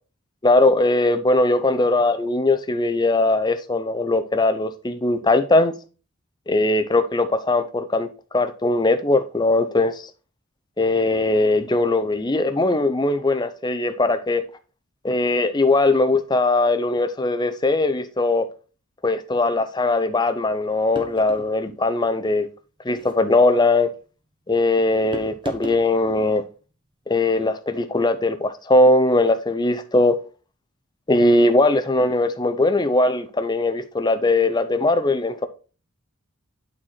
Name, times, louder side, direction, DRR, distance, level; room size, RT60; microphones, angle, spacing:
voice 1, 0.4-5.7 6.5-10.1 10.8-14.4 15.0-18.5 19.0-22.5 22.8-23.9 24.5-26.4 27.1-30.1 31.1-35.5, left 2 dB, 20° left, 0.6 m, -20 dB
sound 1, 20.9-21.5 22.9-23.2 25.1-25.9, right 1 dB, 25° right, 1.1 m, -35 dB
8.8 x 4.3 x 4.3 m
head